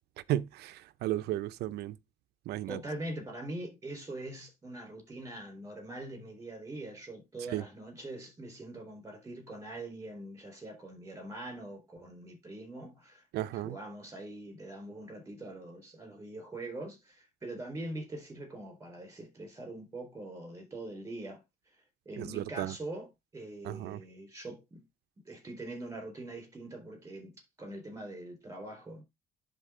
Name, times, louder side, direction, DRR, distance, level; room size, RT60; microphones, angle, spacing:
voice 1, 0.3-2.0 2.5-2.8 7.5-7.6 13.3-13.8 22.2-22.7 23.6-24.0, right 14 dB, 75° right, 0.6 m, -34 dB
voice 2, 2.7-21.4 21.7-24.8 25.3-27.3 27.6-29.0, right 1 dB, 15° right, 4.3 m, -43 dB
11.0 x 4.0 x 3.7 m
cardioid pair, 110°, 17 cm